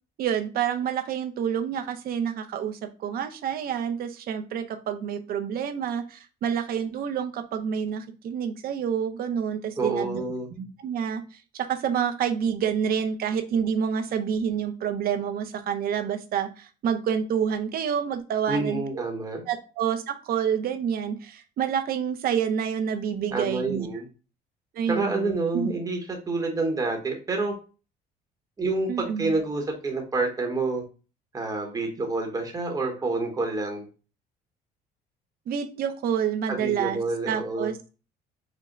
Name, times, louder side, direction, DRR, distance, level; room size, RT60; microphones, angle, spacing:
voice 1, 0.2-10.2 10.6-19.1 19.5-23.9 24.7-25.7 28.9-29.3 35.5-37.9, right 8 dB, 60° right, 8 dB, 0.7 m, -28 dB
voice 2, 9.8-10.5 18.5-19.4 23.3-24.1 24.9-26.0 26.3-27.5 28.6-30.8 31.3-33.9 36.5-37.7, right 3 dB, 20° right, 1 dB, 1.0 m, -28 dB
5.1 x 2.2 x 3.7 m, 0.34 s
cardioid pair, 110°, 17 cm